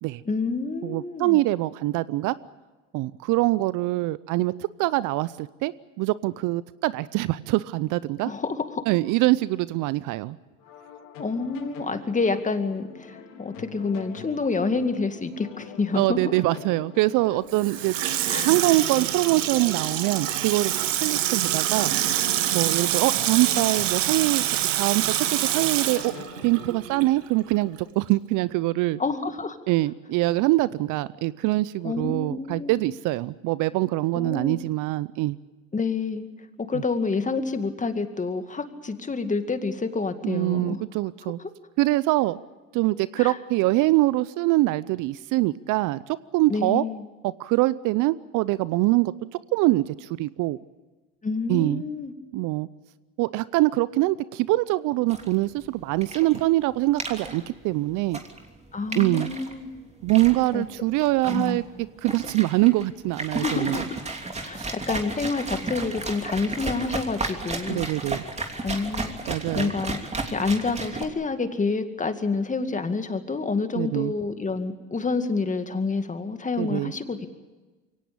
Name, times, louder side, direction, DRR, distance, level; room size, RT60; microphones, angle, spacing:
voice 1, 0.3-1.4 8.2-8.8 11.2-16.2 18.3-18.5 29.0-29.6 31.8-32.8 34.1-34.6 35.7-36.3 36.6-40.8 41.4-41.5 43.2-43.4 46.5-47.0 51.2-52.1 58.7-59.7 60.5-60.6 61.3-61.7 63.4-63.9 64.4-67.9 68.6-69.1 69.5-70.0 70.3-77.3, left 4 dB, 20° left, 8 dB, 2.2 m, -28 dB
voice 2, 0.8-2.3 2.9-8.3 8.9-10.4 15.9-17.9 18.4-21.9 22.5-24.4 24.8-26.1 26.4-29.0 29.7-35.4 36.7-36.8 40.2-41.4 41.8-42.4 42.7-46.8 47.2-49.1 49.5-50.6 51.5-51.8 52.3-52.7 53.2-58.2 58.9-59.3 60.0-61.6 62.0-63.8 64.6-64.7 67.7-68.2 69.3-69.7 73.7-74.1 76.6-76.9, right 18 dB, 55° right, 18 dB, 0.7 m, -24 dB
sound 1, 10.6-26.7, left 6 dB, 65° left, 4.3 m, -44 dB
Water tap faucet / Sink (filling or washing), 17.5-27.2 27.5-27.6, right 12 dB, 80° right, 1.6 m, -26 dB
sound 2, 55.1-71.1, right 2 dB, 15° right, 3.1 m, -34 dB
23.5 x 18.0 x 8.7 m, 1.2 s
hypercardioid pair, 75°, 37 cm